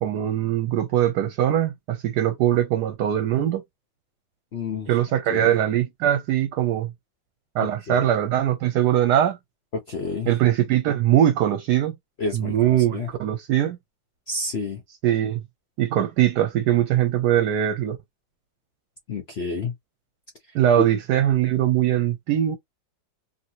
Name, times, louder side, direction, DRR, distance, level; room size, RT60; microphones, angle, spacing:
voice 1, 0.0-3.6 4.9-6.9 7.5-9.4 10.3-11.9 12.3-13.8 15.0-15.4 15.8-18.0 20.5-22.6, right 11 dB, 70° right, 1.1 m, -21 dB
voice 2, 4.5-4.9 5.3-5.5 7.9-8.1 9.7-10.3 12.2-13.1 14.3-14.8 19.1-19.7 20.8-20.9, left 4 dB, 65° left, 0.6 m, -29 dB
2.8 x 2.8 x 2.8 m
omnidirectional pair, 2.0 m